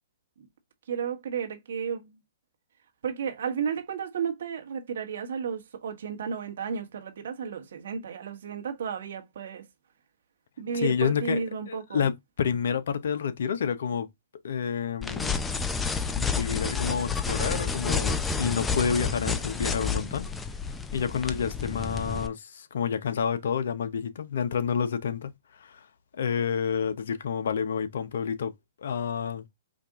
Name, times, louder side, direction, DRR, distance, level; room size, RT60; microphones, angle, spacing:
voice 1, 0.9-2.2 3.0-9.6 10.6-12.1, right 6 dB, 70° right, 1.3 m, -33 dB
voice 2, 10.7-11.4 11.7-14.1 14.4-15.4 16.1-20.3 20.9-25.9 26.1-28.5 28.8-29.4, left 7 dB, 70° left, 0.9 m, -29 dB
sound 1, 15.0-22.3, left 5 dB, 10° left, 0.5 m, -30 dB
5.1 x 2.6 x 3.6 m
hypercardioid pair, 140°, 0 cm